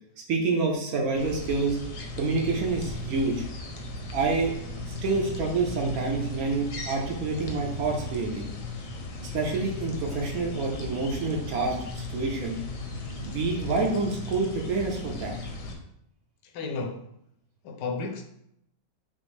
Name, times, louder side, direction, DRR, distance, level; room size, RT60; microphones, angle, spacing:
voice 1, 0.3-1.8 2.2-3.4 4.1-4.5 5.0-8.5 9.3-12.6 13.2-15.4, right 3 dB, 65° right, 1.1 m, -27 dB
sound 1, 1.1-15.8, left 2 dB, 65° left, 0.9 m, -36 dB
voice 2, 16.5-17.0 17.6-18.2, left 4 dB, 80° left, 1.2 m, -32 dB
6.0 x 2.0 x 3.2 m
omnidirectional pair, 1.8 m